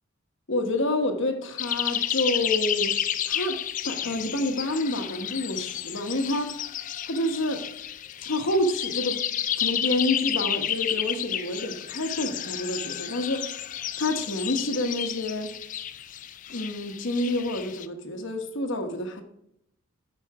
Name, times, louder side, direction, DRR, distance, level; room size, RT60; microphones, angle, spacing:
voice 1, 0.5-3.0 3.2-6.5 7.1-7.6 8.2-9.2 9.6-13.7 14.0-15.5 16.5-19.2, left 1 dB, 60° left, 1.0 m, -28 dB
sound 1, 1.6-17.9, left 10 dB, 35° left, 0.3 m, -31 dB
8.4 x 5.2 x 4.7 m
head